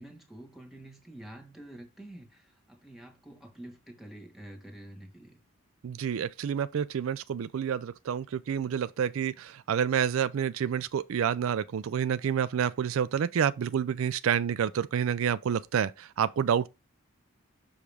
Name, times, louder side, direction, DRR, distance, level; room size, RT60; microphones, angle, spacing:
voice 1, 0.0-5.4, right 1 dB, ahead, 1.4 m, -48 dB
voice 2, 5.8-16.7, right 8 dB, 80° right, 0.4 m, -28 dB
6.3 x 4.9 x 3.5 m
head